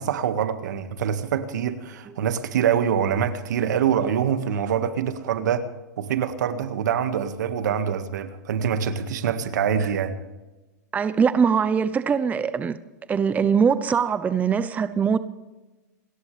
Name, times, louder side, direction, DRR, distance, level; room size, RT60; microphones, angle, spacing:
voice 1, 0.0-5.7 6.0-10.2, right 8 dB, 80° right, 1.8 m, -25 dB
voice 2, 10.9-12.8 13.1-15.2, right 6 dB, 15° right, 0.7 m, -22 dB
28.5 x 13.0 x 3.4 m
hypercardioid pair, 135°, 9 cm